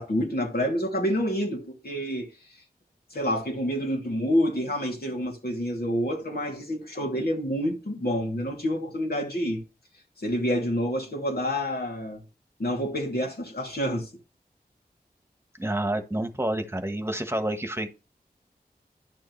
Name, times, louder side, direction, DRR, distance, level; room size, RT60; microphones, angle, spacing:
voice 1, 0.0-2.3 3.1-9.6 10.2-12.2 12.6-14.1, equal, 70° left, 2.7 m, -28 dB
voice 2, 15.5-17.9, right 1 dB, 15° right, 1.3 m, -29 dB
10.5 x 6.5 x 3.2 m
wide cardioid pair, 45°, 16 cm